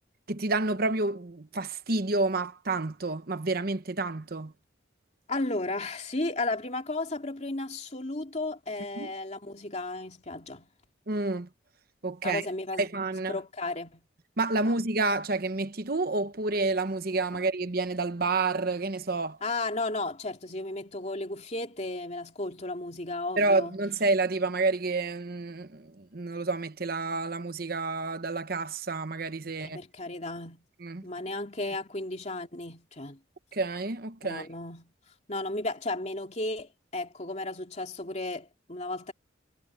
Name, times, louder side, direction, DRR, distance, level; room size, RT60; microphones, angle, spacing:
voice 1, 0.3-4.5 9.0-9.1 11.1-11.5 12.0-12.4 12.8-13.4 14.4-19.4 23.4-29.8 30.8-31.0 33.5-34.4, right 3 dB, 50° right, 1.0 m, -29 dB
voice 2, 5.3-10.7 12.2-14.0 14.6-14.7 19.4-23.8 29.5-30.7 31.0-33.2 34.2-34.9 35.3-39.1, left 2 dB, 35° left, 2.8 m, -34 dB
head